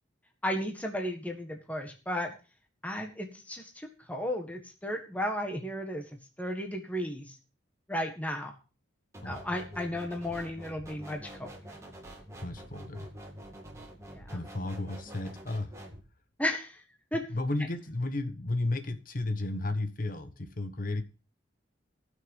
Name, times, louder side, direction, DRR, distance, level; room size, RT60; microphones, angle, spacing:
voice 1, 0.4-2.3 2.8-7.3 7.9-8.5 9.2-11.5 14.1-14.4 16.4-16.8 17.1-17.2, left 1 dB, 10° left, 1.6 m, -34 dB
sound 1, 9.1-16.0, equal, 15° right, 2.3 m, -46 dB
voice 2, 12.4-13.1 14.3-15.7 17.3-21.0, left 2 dB, 45° left, 1.1 m, -33 dB
15.5 x 6.5 x 5.4 m
head